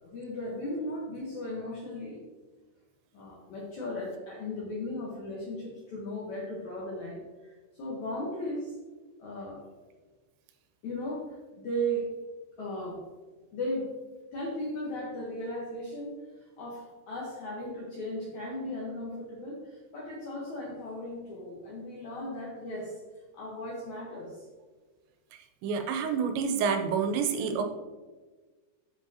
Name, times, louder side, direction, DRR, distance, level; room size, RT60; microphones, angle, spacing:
voice 1, 0.0-2.2 3.1-8.7 9.2-9.6 10.8-12.1 12.6-13.0 13.5-13.9 14.3-23.0 23.3-24.5, equal, 80° left, -3 dB, 1.6 m, -36 dB
voice 2, 25.6-27.6, right 6 dB, 85° right, 6 dB, 3.0 m, -28 dB
8.0 x 7.4 x 2.8 m, 1.3 s
omnidirectional pair, 5.1 m